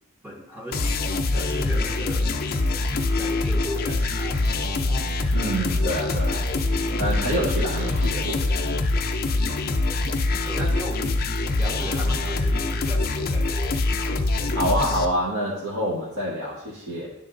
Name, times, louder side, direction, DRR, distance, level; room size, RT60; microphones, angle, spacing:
voice 1, 0.2-2.8 3.2-5.0 10.4-14.0, left 1 dB, 10° right, -1 dB, 0.8 m, -37 dB
sound 1, 0.7-15.1, left 2 dB, 45° left, 0.5 m, -24 dB
Snare drum, 1.0-8.3, right 1 dB, 35° right, 0.8 m, -45 dB
voice 2, 5.3-6.5 7.0-8.6 14.5-17.1, equal, 65° right, -6 dB, 1.3 m, -27 dB
10.5 x 3.6 x 3.8 m, 0.83 s
head